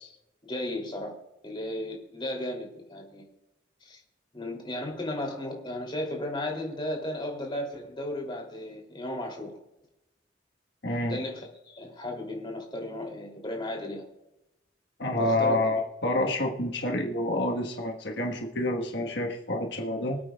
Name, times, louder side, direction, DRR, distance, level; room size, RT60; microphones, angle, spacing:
voice 1, 0.5-1.1 1.4-3.3 3.8-4.0 4.3-9.5 11.1-14.0 15.2-15.8, left 1 dB, 25° left, 1 dB, 2.9 m, -35 dB
voice 2, 10.8-11.2 15.0-20.2, left 1 dB, 75° left, 1 dB, 1.4 m, -28 dB
24.5 x 8.7 x 2.3 m, 0.87 s
head